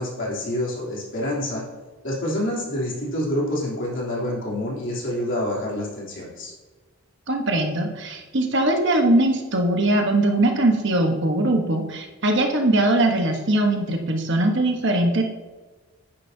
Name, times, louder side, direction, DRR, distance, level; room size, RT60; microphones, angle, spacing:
voice 1, 0.0-1.6 2.0-6.5, left 1 dB, 60° left, -5 dB, 3.3 m, -27 dB
voice 2, 7.3-15.2, right 1 dB, 55° right, 3 dB, 1.3 m, -21 dB
10.5 x 9.9 x 2.8 m, 1.3 s
head